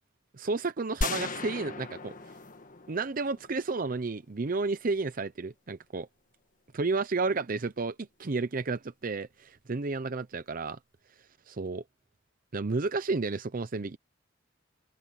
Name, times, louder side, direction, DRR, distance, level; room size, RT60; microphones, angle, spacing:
voice 1, 0.4-2.2 2.9-6.1 6.7-10.8 11.5-11.8 12.5-14.0, right 3 dB, 50° right, 0.7 m, -31 dB
sound 1, 1.0-3.9, left 3 dB, 45° left, 1.5 m, -36 dB
head